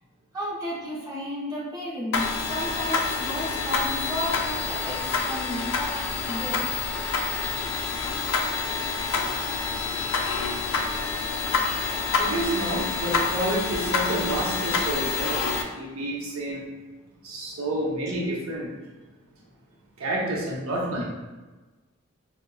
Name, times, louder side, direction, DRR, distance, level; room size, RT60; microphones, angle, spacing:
voice 1, 0.3-6.6 10.0-10.2, equal, 15° right, -7 dB, 0.8 m, -33 dB
sound 1, 2.1-15.6, left 4 dB, 60° left, 0.4 m, -27 dB
voice 2, 11.0-11.9 12.2-15.4 15.7-16.7 17.2-18.7 20.0-21.0, right 1 dB, 85° right, -3 dB, 0.7 m, -29 dB
4.7 x 2.1 x 2.2 m, 1.2 s
head